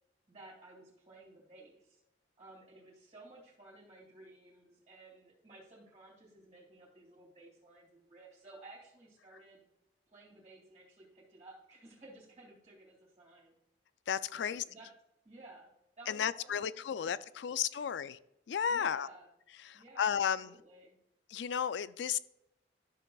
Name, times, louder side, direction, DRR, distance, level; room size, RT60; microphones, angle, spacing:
voice 1, 0.3-2.0 2.4-9.6 10.1-13.5 14.3-14.9 15.2-15.7 16.0-18.0 18.7-19.3 19.7-21.0, right 2 dB, 30° right, 2.5 m, -56 dB
voice 2, 14.1-14.6 16.1-18.2 18.5-19.1 19.6-20.5 21.3-22.2, left 8 dB, 75° left, 0.4 m, -33 dB
12.5 x 6.8 x 2.4 m
head